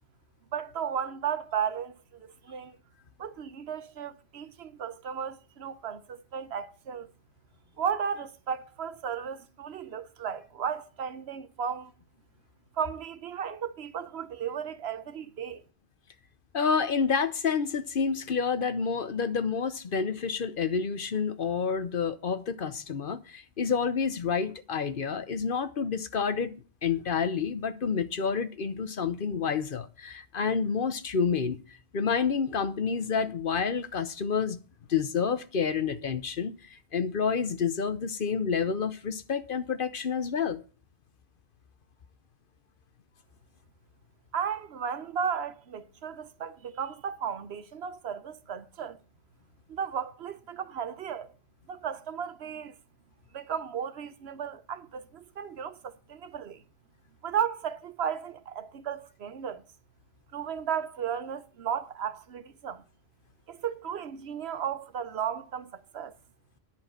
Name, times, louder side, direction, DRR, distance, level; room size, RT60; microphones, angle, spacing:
voice 1, 0.5-2.8 3.2-7.1 7.8-11.9 12.7-15.6 44.3-49.0 49.7-51.3 51.7-52.7 53.3-56.6 57.2-59.6 60.3-62.8 63.5-66.2, right 8 dB, 80° right, 1.1 m, -34 dB
voice 2, 16.5-26.5 26.8-31.6 31.9-34.6 34.9-40.6, left 6 dB, 55° left, 1.0 m, -29 dB
10.5 x 4.7 x 7.7 m
omnidirectional pair, 1.1 m